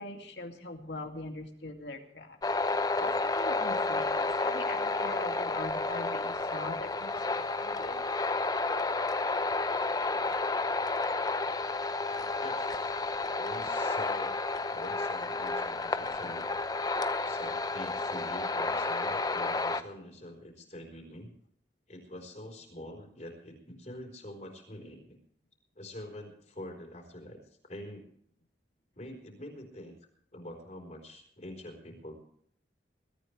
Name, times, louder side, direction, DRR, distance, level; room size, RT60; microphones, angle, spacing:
voice 1, 0.0-8.0, left 2 dB, 85° left, 3 dB, 2.5 m, -42 dB
sound 1, 2.4-19.8, left 3 dB, 20° left, 0.7 m, -31 dB
voice 2, 12.4-13.1 13.4-14.4 14.7-16.5 17.2-21.3 21.9-25.2 25.8-28.1 28.9-30.0 30.3-32.2, left 1 dB, 40° left, 1 dB, 4.2 m, -45 dB
22.0 x 13.5 x 3.3 m, 0.67 s
head